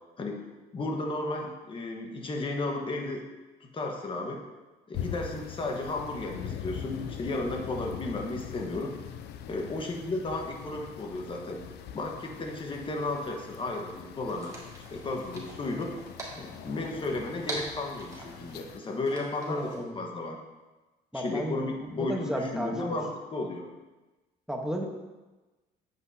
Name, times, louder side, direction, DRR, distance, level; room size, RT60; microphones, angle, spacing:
voice 1, 0.7-3.2 3.7-4.4 4.9-8.9 9.5-11.6 11.9-14.6 14.9-15.9 16.4-19.7 19.9-20.4 21.1-23.7, left 2 dB, 30° left, 1 dB, 1.3 m, -33 dB
sound 1, 4.9-18.8, left 9 dB, 75° left, 0.6 m, -42 dB
sound 2, 14.3-19.8, right 2 dB, 20° right, 2.1 m, -44 dB
voice 2, 19.4-19.9 21.1-21.6 21.9-23.0 24.5-24.9, equal, 5° right, 1 dB, 1.1 m, -33 dB
9.6 x 8.1 x 2.8 m, 1.2 s
cardioid pair, 110°, 17 cm